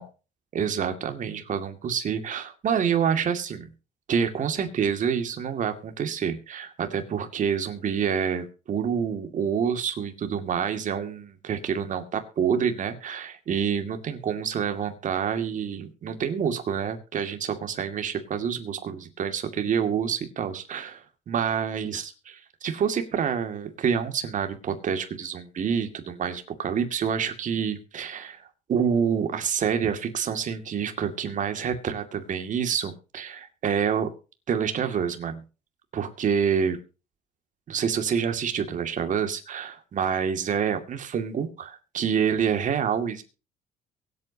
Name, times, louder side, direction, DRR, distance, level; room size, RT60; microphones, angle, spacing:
voice 1, 0.5-3.7 4.1-34.1 34.5-35.4 35.9-36.8 37.7-43.2, right 7 dB, 50° right, 7 dB, 2.4 m, -27 dB
23.0 x 8.5 x 2.9 m, 0.33 s
cardioid pair, 110°, 17 cm